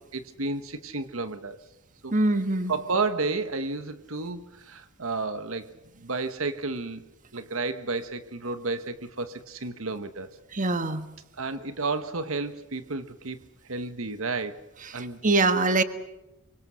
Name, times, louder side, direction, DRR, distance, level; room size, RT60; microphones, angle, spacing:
voice 1, 0.1-1.6 2.0-2.1 2.7-5.7 6.0-7.0 7.3-10.3 11.4-13.4 13.7-14.6 14.9-15.2, right 3 dB, 75° right, 10 dB, 1.3 m, -31 dB
voice 2, 2.1-2.7 10.5-11.0 14.9-15.8, right 2 dB, 40° right, 10 dB, 1.5 m, -24 dB
26.5 x 24.0 x 6.3 m, 0.97 s
head